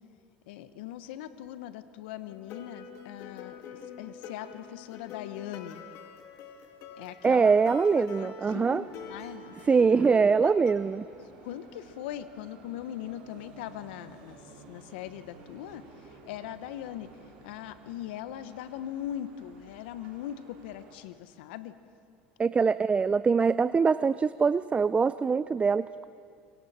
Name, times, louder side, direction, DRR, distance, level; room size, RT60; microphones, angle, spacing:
voice 1, 0.5-3.6 4.0-5.8 7.0-7.5 7.9-9.7 10.4-10.5 11.4-14.4 14.7-17.1 17.4-21.7, left 11 dB, 75° left, 12 dB, 1.0 m, -40 dB
sound 1, 2.3-10.7, left 5 dB, 60° left, 2.4 m, -45 dB
voice 2, 7.2-8.8 9.6-11.1 22.4-26.0, right 5 dB, 20° right, 16 dB, 0.4 m, -23 dB
sound 2, 8.7-21.0, right 4 dB, 75° right, 4.6 m, -53 dB
26.5 x 23.0 x 4.3 m, 2.3 s
hypercardioid pair, 85°, 6 cm